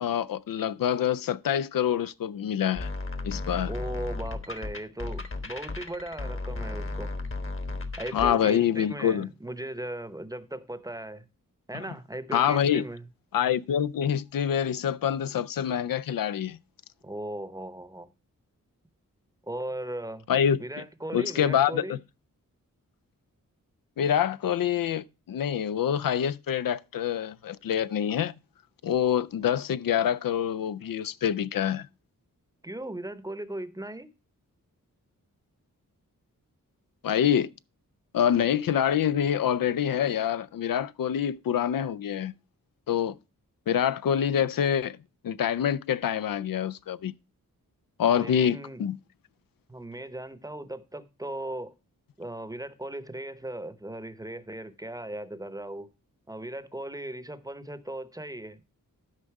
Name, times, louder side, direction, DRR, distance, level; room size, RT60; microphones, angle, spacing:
voice 1, 0.0-2.9 3.2-3.7 8.1-9.3 12.3-12.8 13.3-16.6 20.3-20.6 21.1-22.0 24.0-28.3 28.8-31.9 37.0-37.5 38.1-42.3 42.9-43.1 43.7-45.0 45.2-47.1 48.0-49.0, left 9 dB, 85° left, 0.5 m, -26 dB
sound 1, 2.7-8.3, left 2 dB, 40° left, 1.2 m, -34 dB
voice 2, 3.7-7.2 8.0-11.3 11.7-13.1 17.0-18.1 19.4-20.3 20.6-22.0 32.6-34.1 48.1-48.8 49.7-51.7 52.2-55.9 56.3-58.6, right 1 dB, 10° right, 0.8 m, -37 dB
12.0 x 5.3 x 4.7 m
wide cardioid pair, 120°, 33 cm